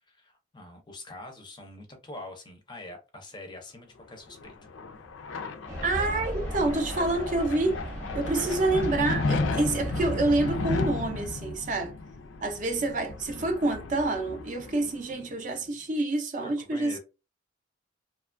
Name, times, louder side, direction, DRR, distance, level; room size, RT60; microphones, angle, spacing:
voice 1, 0.1-4.7 8.3-8.6 16.4-17.0, left 2 dB, 25° left, 0.5 m, -44 dB
sound 1, 4.1-15.4, left 3 dB, 80° left, 0.4 m, -34 dB
sound 2, 5.7-11.1, equal, 15° right, 0.8 m, -36 dB
voice 2, 5.8-7.8 8.1-11.9 12.4-17.0, right 2 dB, 40° right, 0.4 m, -27 dB
2.8 x 2.2 x 2.4 m
head